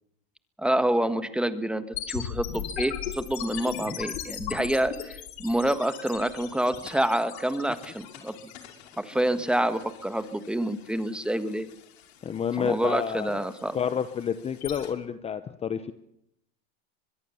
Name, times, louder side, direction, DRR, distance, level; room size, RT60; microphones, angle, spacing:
voice 1, 0.6-8.3 9.0-11.7 12.6-13.8, right 1 dB, 5° right, 11 dB, 1.5 m, -27 dB
sound 1, 1.9-14.9, left 10 dB, 80° left, 5.6 m, -39 dB
voice 2, 12.2-13.4 13.7-15.9, left 8 dB, 20° left, 12 dB, 0.9 m, -29 dB
24.0 x 21.5 x 7.1 m, 0.78 s
supercardioid pair, 140°, 32 cm